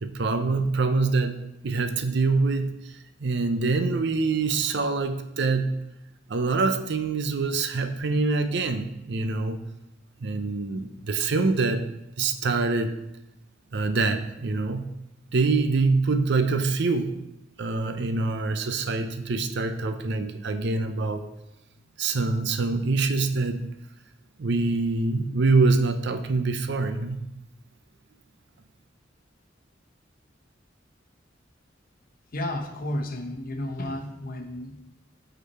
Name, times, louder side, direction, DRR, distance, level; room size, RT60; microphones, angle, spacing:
voice 1, 0.0-1.4 1.6-2.7 3.2-5.7 6.3-9.6 10.2-11.9 12.2-13.0 13.7-14.8 15.3-17.2 17.6-21.3 22.0-23.6 24.4-27.2, right 3 dB, 65° right, 8 dB, 0.6 m, -25 dB
voice 2, 32.3-34.8, left 1 dB, 50° left, 4 dB, 0.9 m, -32 dB
8.3 x 4.1 x 4.2 m, 0.89 s
head